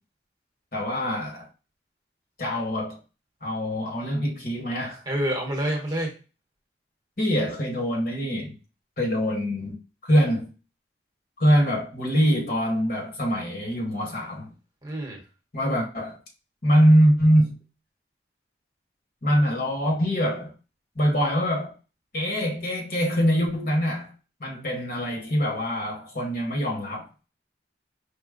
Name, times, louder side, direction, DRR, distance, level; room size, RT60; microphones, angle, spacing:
voice 1, 0.7-1.5 2.4-3.0 3.4-5.0 7.2-8.5 9.0-9.8 10.0-10.4 11.4-14.5 15.5-16.2 16.6-17.6 19.2-20.5 20.9-21.7 22.1-24.1 24.4-27.1, equal, 50° left, 1.5 m, -23 dB
voice 2, 5.1-6.1 14.8-15.2, right 1 dB, 20° right, 1.0 m, -27 dB
5.0 x 2.2 x 3.7 m
head